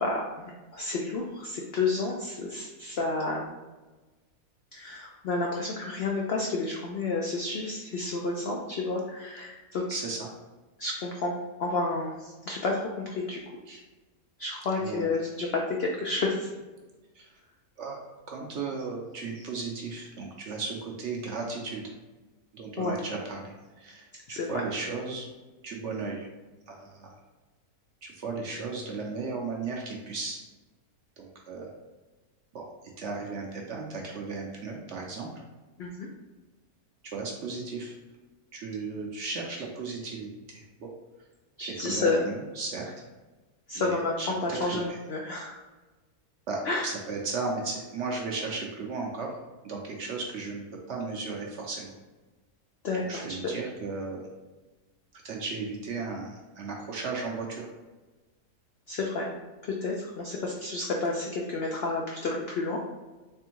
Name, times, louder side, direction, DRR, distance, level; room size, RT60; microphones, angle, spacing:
voice 1, 0.0-3.5 4.7-9.8 10.8-11.3 11.6-13.4 14.4-16.5 22.8-23.0 24.3-24.6 35.8-36.1 41.6-42.2 43.7-45.6 46.6-46.9 52.8-53.4 58.9-59.3 59.6-62.8, left 3 dB, 85° left, -1 dB, 0.5 m, -30 dB
voice 2, 9.9-10.3 13.7-13.8 14.8-15.2 17.1-17.3 17.8-21.8 22.5-25.3 25.6-26.3 26.7-27.2 28.0-30.4 31.2-31.7 32.5-32.7 33.0-35.3 37.0-38.0 38.5-40.9 41.6-42.9 43.7-45.0 46.5-49.4 49.6-51.9 52.9-54.3 55.2-57.7, right 4 dB, 65° right, -1 dB, 0.7 m, -35 dB
3.4 x 3.4 x 2.9 m, 1.2 s
omnidirectional pair, 1.6 m